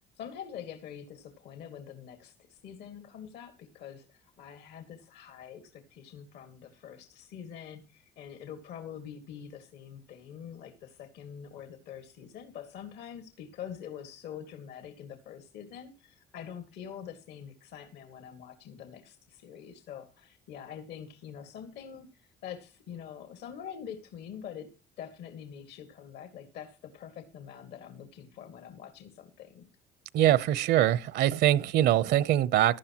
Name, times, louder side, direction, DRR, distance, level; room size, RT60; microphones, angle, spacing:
voice 1, 0.1-29.7, left 8 dB, 80° left, 2.1 m, -45 dB
voice 2, 30.1-32.8, right 12 dB, 80° right, 0.9 m, -23 dB
16.5 x 12.0 x 3.0 m
cardioid pair, 110°, 17 cm